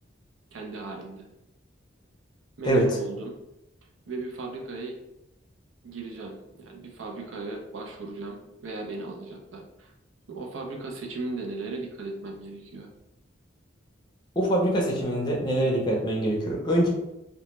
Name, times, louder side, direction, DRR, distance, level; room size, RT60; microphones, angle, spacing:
voice 1, 0.5-1.3 2.6-3.4 4.1-5.0 5.8-9.9 10.3-12.9, right 3 dB, 90° right, 1 dB, 0.5 m, -37 dB
voice 2, 14.4-16.9, right 1 dB, 25° left, -2 dB, 0.5 m, -24 dB
2.2 x 2.1 x 2.9 m, 0.89 s
head